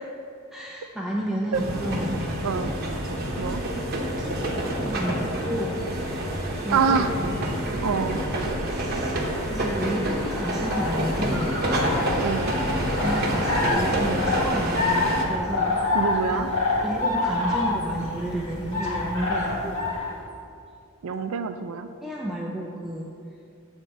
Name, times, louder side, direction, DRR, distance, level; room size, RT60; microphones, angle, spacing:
voice 1, 0.5-2.5 3.5-3.6 4.2-5.9 6.6-7.2 8.7-9.2 9.5-11.6 13.0-15.8 16.3-16.5 16.8-19.8 22.0-23.1, equal, ahead, -4 dB, 0.5 m, -31 dB
sound 1, 1.5-15.2, right 1 dB, 50° right, 1.1 m, -28 dB
voice 2, 6.7-7.1 7.8-8.2 12.2-12.5 15.9-16.5 21.0-21.9, right 5 dB, 80° right, 9 dB, 0.4 m, -25 dB
sound 2, 10.4-20.1, left 2 dB, 70° left, 1.9 m, -27 dB
7.9 x 4.4 x 6.2 m, 2.5 s
head